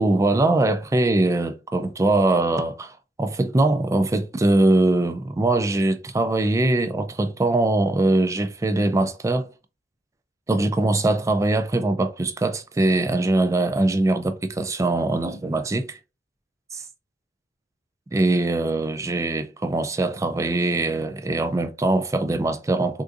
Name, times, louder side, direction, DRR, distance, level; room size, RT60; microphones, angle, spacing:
voice 1, 0.0-9.5 10.5-16.0 16.7-16.8 18.1-23.0, right 2 dB, 15° right, 0.3 m, -22 dB
3.6 x 2.5 x 2.4 m
head